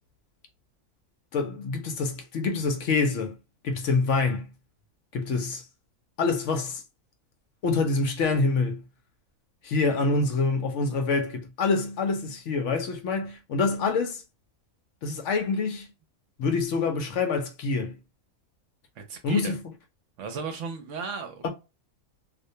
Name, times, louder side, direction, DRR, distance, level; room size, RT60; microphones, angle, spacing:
voice 1, 1.3-3.3 3.6-4.5 5.1-5.6 6.2-6.8 7.6-8.8 9.6-14.2 15.0-15.9 16.4-18.0 19.2-19.6 21.4-21.5, left 4 dB, 70° left, 0.8 m, -26 dB
voice 2, 19.0-19.6 20.2-21.5, right 5 dB, 70° right, 0.9 m, -35 dB
2.4 x 2.1 x 2.6 m
omnidirectional pair, 1.4 m